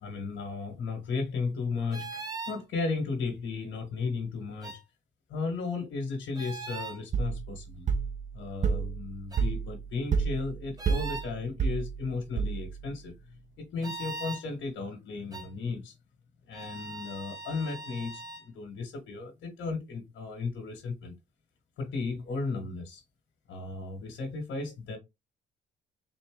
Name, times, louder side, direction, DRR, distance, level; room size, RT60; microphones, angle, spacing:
voice 1, 0.0-4.8 5.3-7.9 8.3-15.9 16.5-21.1 21.8-23.0 23.5-25.0, left 4 dB, 80° left, 1.4 m, -35 dB
sound 1, 1.9-2.6 4.6-4.8 6.3-7.0 9.3-9.5 10.8-11.3 13.8-14.4 15.3-15.5 16.5-18.5, right 3 dB, 20° right, 1.1 m, -40 dB
sound 2, 7.1-12.9, right 5 dB, 40° right, 0.6 m, -31 dB
4.1 x 2.6 x 3.7 m
cardioid pair, 90°, 20 cm